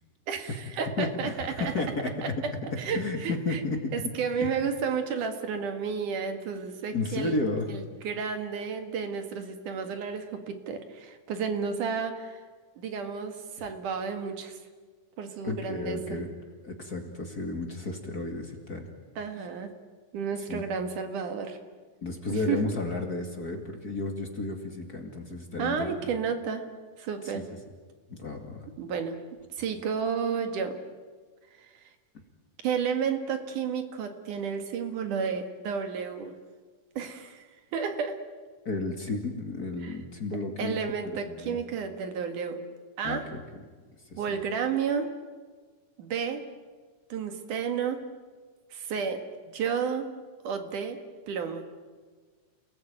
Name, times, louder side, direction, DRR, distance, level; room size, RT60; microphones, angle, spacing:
voice 1, 0.3-1.7 2.2-3.6 3.9-7.4 7.7-12.4 12.8-14.6 15.2-16.2 19.2-19.7 20.1-21.6 22.3-22.6 25.6-26.6 27.0-27.5 28.8-29.2 29.5-30.8 31.6-31.7 32.6-36.4 37.0-38.2 39.8-39.9 40.6-42.7 43.0-43.3 44.2-45.1 46.0-46.4 47.1-48.0 48.7-49.2 49.5-50.1 50.4-51.0 51.3-51.6, right 6 dB, 75° right, 7 dB, 3.3 m, -32 dB
voice 2, 1.0-2.3 2.9-3.9 4.4-4.6 6.9-7.7 15.4-16.3 16.6-18.9 20.5-20.6 22.0-26.1 27.2-27.4 28.1-28.7 38.6-40.8 41.0-41.6 43.0-43.4 44.1-44.2, left 2 dB, 30° left, 3 dB, 2.4 m, -33 dB
29.0 x 19.0 x 9.0 m, 1.5 s
omnidirectional pair, 3.6 m